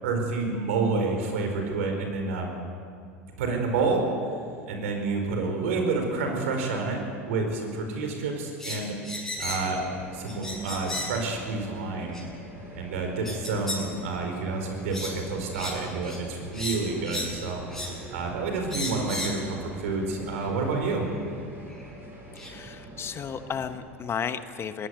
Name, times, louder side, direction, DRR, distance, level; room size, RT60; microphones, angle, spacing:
voice 1, 0.0-2.5 3.4-4.0 4.7-7.0 7.3-9.0 9.4-9.8 10.1-12.2 12.7-17.6 18.1-21.1, right 3 dB, 75° right, 3 dB, 4.7 m, -29 dB
sound 1, 8.6-9.8 10.3-11.2 12.1-12.2 13.2-13.8 14.2-14.4 14.9-15.2 15.5-15.8 16.0-16.2 16.5-17.4 17.7-18.0 18.7-19.4 20.4-20.5 21.7-21.8 22.4-22.5, left 1 dB, 5° left, 6.7 m, -34 dB
sound 2, 9.4-23.7, right 1 dB, 30° right, 6.1 m, -43 dB
voice 2, 22.3-24.9, left 7 dB, 35° left, 10 dB, 1.2 m, -33 dB
20.5 x 17.5 x 8.3 m, 2.3 s
hypercardioid pair, 85°, 7 cm